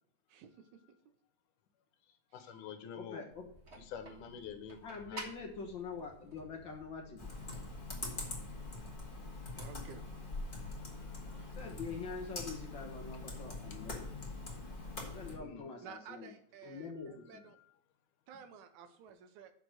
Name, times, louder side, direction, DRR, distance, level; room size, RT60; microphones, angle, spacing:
voice 1, 2.3-3.2 3.8-5.2 11.1-11.3 15.4-15.7, left 8 dB, 85° left, 9 dB, 2.5 m, -47 dB
voice 2, 2.9-3.5 4.8-7.3 11.5-14.2 15.1-16.3 16.6-17.4, left 5 dB, 50° left, 1 dB, 1.6 m, -45 dB
sound 1, 3.3-8.3, right 1 dB, 35° right, 1.1 m, -52 dB
Computer keyboard, 7.2-15.4, left 2 dB, 20° left, 1.5 m, -43 dB
voice 3, 9.6-10.0 11.4-11.5 15.8-17.6 18.3-19.5, right 7 dB, 80° right, 9 dB, 2.2 m, -53 dB
6.7 x 6.0 x 6.4 m, 0.66 s
omnidirectional pair, 3.5 m